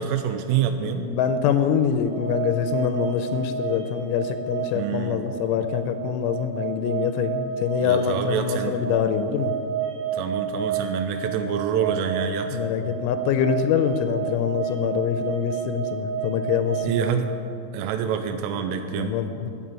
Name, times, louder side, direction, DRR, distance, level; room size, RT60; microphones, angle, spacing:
voice 1, 0.0-1.1 4.7-5.3 7.8-8.8 10.1-12.6 16.8-17.3 17.7-19.2, right 8 dB, 90° right, 6 dB, 3.2 m, -26 dB
voice 2, 0.8-9.5 12.5-17.0 19.0-19.5, left 8 dB, 85° left, 9 dB, 2.9 m, -25 dB
sound 1, 2.0-16.8, right 7 dB, 60° right, 5.2 m, -31 dB
15.0 x 6.8 x 8.9 m, 2.9 s
omnidirectional pair, 5.6 m